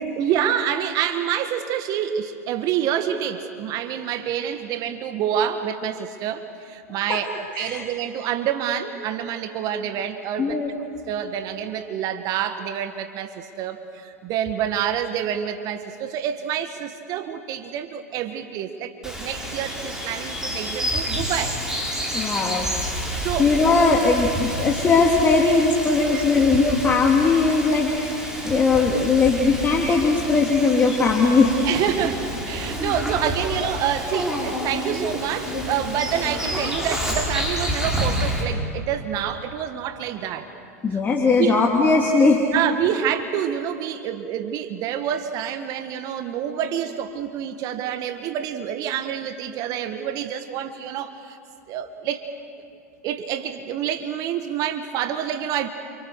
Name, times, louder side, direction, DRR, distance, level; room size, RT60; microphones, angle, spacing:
voice 1, 0.2-10.6 11.1-21.6 23.2-23.5 25.7-26.3 31.6-40.5 40.9-41.0 41.4-41.6 42.5-51.4 51.7-52.2 53.0-55.7, right 9 dB, 45° right, 8 dB, 1.6 m, -27 dB
voice 2, 10.4-10.7 22.1-22.7 23.4-31.6 40.8-42.4, left 4 dB, 25° left, -1 dB, 2.7 m, -19 dB
Bird vocalization bird call bird song, 19.0-38.4, equal, 5° right, 6.7 m, -29 dB
29.0 x 28.0 x 6.5 m, 2.5 s
hypercardioid pair, 90°, 9 cm